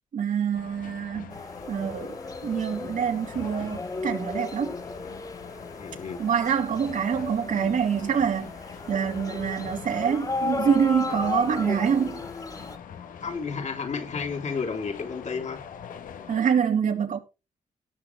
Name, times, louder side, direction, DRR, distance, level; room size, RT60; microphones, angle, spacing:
voice 1, 0.1-1.3 1.7-2.2 2.4-4.7 6.2-8.5 8.9-12.2 16.3-17.2, right 7 dB, 70° right, 3.2 m, -25 dB
sound 1, 0.5-16.4, left 8 dB, 80° left, 1.6 m, -43 dB
sound 2, 1.3-12.8, left 3 dB, 25° left, 2.3 m, -35 dB
voice 2, 5.8-6.2 13.2-15.6, left 5 dB, 60° left, 3.4 m, -32 dB
18.0 x 6.4 x 3.4 m
cardioid pair, 60°, 14 cm